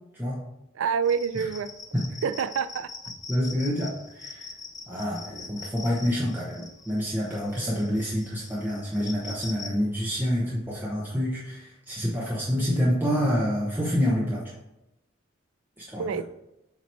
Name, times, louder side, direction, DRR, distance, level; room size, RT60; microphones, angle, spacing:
voice 1, 0.1-0.4 1.9-2.0 3.3-4.5 4.9-14.5 15.8-16.2, equal, 10° right, -5 dB, 0.8 m, -27 dB
voice 2, 0.8-1.7 2.2-2.9 16.0-16.2, right 6 dB, 80° right, 13 dB, 0.3 m, -27 dB
sound 1, 1.1-9.7, left 4 dB, 20° left, 0.5 m, -43 dB
7.4 x 3.0 x 4.2 m, 0.90 s
head